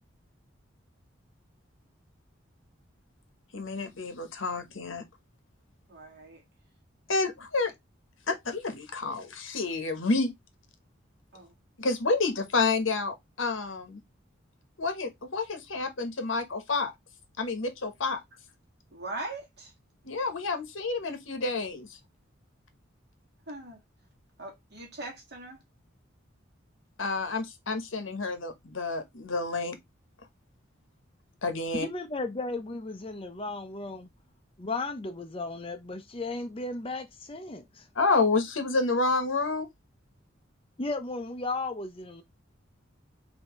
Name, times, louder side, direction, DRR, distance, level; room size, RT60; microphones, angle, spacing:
voice 1, 3.5-5.0 7.1-7.7 8.3-10.3 11.8-14.0 14.8-16.9 17.4-18.2 20.0-22.0 27.0-29.8 31.4-31.9 37.9-39.7, left 3 dB, 75° left, 1.1 m, -29 dB
voice 2, 5.9-6.4 11.3-11.5 18.9-19.7 23.5-23.8 24.4-25.6, right 2 dB, 55° right, 2.0 m, -40 dB
voice 3, 31.7-34.1 34.6-37.9 40.8-42.2, left 3 dB, 25° left, 0.6 m, -35 dB
5.5 x 2.8 x 3.0 m
head